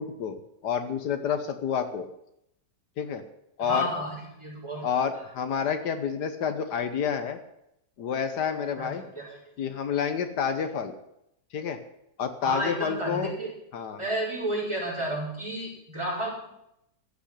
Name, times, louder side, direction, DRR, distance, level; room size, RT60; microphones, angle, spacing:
voice 1, 0.0-2.1 3.0-3.2 3.6-3.9 4.8-7.4 8.0-9.0 9.6-10.9 11.5-11.8 12.2-13.3 13.7-14.0, left 7 dB, 80° left, 9 dB, 1.6 m, -29 dB
voice 2, 3.6-5.2 8.8-9.4 12.4-13.5 14.0-16.5, equal, 15° right, -4 dB, 5.3 m, -32 dB
15.0 x 6.2 x 9.9 m, 0.80 s
omnidirectional pair, 1.8 m